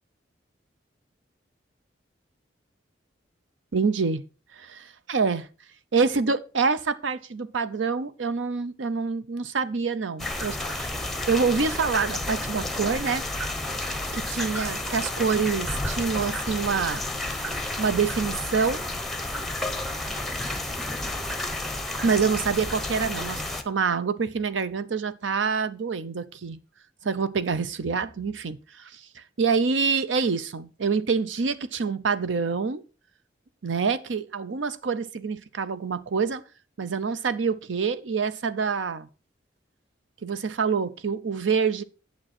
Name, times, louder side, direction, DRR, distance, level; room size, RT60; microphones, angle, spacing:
voice 1, 3.7-4.2 4.6-5.5 5.9-10.9 11.3-13.2 14.1-17.0 17.8-18.8 22.0-26.6 27.0-28.6 29.2-32.8 33.6-36.4 36.8-39.1 40.2-41.8, right 5 dB, 90° right, 0.7 m, -26 dB
sound 1, 10.2-23.6, left 2 dB, ahead, 0.9 m, -31 dB
8.9 x 7.2 x 4.3 m
head